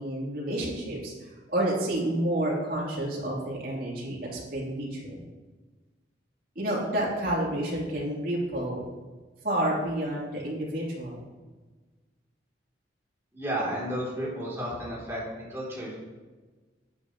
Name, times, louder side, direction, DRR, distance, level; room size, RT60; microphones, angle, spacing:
voice 1, 0.0-5.2 6.5-8.8 9.4-11.2, right 1 dB, 50° right, -5 dB, 3.3 m, -30 dB
voice 2, 13.3-15.2 15.5-15.9, right 1 dB, 15° right, -6 dB, 3.1 m, -32 dB
11.0 x 9.2 x 3.1 m, 1.3 s
head